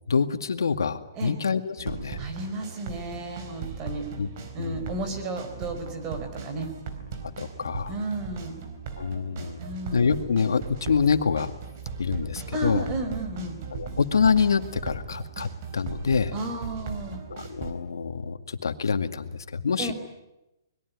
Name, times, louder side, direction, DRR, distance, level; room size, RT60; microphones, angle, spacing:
voice 1, 0.1-2.2 4.2-4.3 4.6-5.0 7.4-7.9 9.0-9.6 9.9-11.5 12.0-12.8 13.7-16.3 17.3-19.9, left 5 dB, 85° left, 9 dB, 2.1 m, -26 dB
sound 1, 1.8-17.7, right 6 dB, 40° right, 4.1 m, -38 dB
voice 2, 2.2-4.1 4.5-6.7 7.9-8.6 9.6-10.0 12.5-13.6 16.3-17.2 19.8-19.9, right 2 dB, 25° right, 6 dB, 4.7 m, -33 dB
25.0 x 21.0 x 9.7 m, 0.94 s
hypercardioid pair, 155°, 2 cm